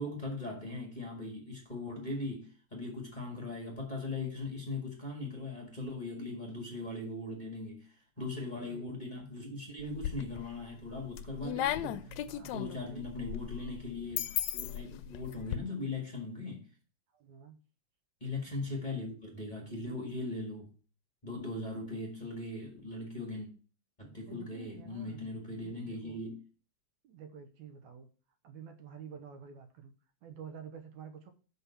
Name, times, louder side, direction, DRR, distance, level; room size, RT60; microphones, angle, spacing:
voice 1, 0.0-12.1 12.4-16.7 18.2-20.7 21.2-23.5 24.0-26.4, left 2 dB, 20° left, 1.6 m, -39 dB
voice 2, 8.2-8.9 11.5-13.1 17.1-17.6 24.0-25.2 25.6-26.2 27.0-28.1 28.4-29.9 30.2-31.3, right 7 dB, 75° right, 2.3 m, -50 dB
sound 1, 9.8-10.5 10.9-15.6, left 12 dB, 80° left, 1.7 m, -36 dB
6.4 x 5.5 x 7.2 m
omnidirectional pair, 3.4 m